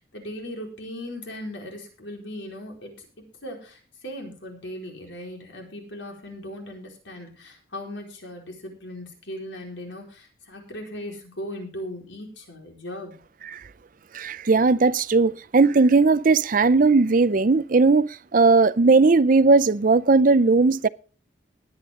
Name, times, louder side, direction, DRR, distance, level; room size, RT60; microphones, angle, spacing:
voice 1, 0.0-3.1 3.4-13.2, left 1 dB, 75° left, 4.5 m, -38 dB
voice 2, 14.1-20.9, right 3 dB, 45° right, 0.5 m, -18 dB
20.0 x 8.8 x 3.7 m
head